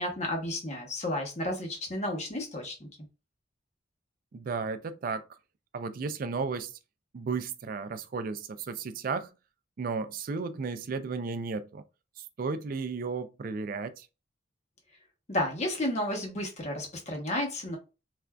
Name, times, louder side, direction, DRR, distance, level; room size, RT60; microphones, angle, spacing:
voice 1, 0.0-2.9 15.3-17.8, left 1 dB, 35° left, 0.9 m, -32 dB
voice 2, 4.3-5.2 5.7-6.7 7.1-9.3 9.8-11.8 12.4-14.1, right 4 dB, 50° right, 0.3 m, -34 dB
3.3 x 2.5 x 2.2 m
head